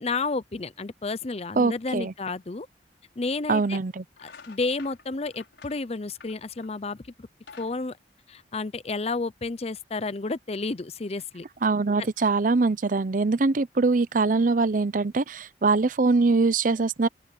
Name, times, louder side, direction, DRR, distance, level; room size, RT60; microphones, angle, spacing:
voice 1, 0.0-2.7 3.2-3.8 4.2-7.3 7.6-8.0 8.3-11.5 12.0-12.1, left 3 dB, 35° left, 0.6 m, -31 dB
voice 2, 1.6-2.1 3.5-4.0 11.6-17.1, right 3 dB, 50° right, 0.6 m, -23 dB
sound 1, 2.8-2.9 3.6-3.8 4.1-6.8 7.2-8.9, left 5 dB, 90° left, 5.6 m, -50 dB
open air
head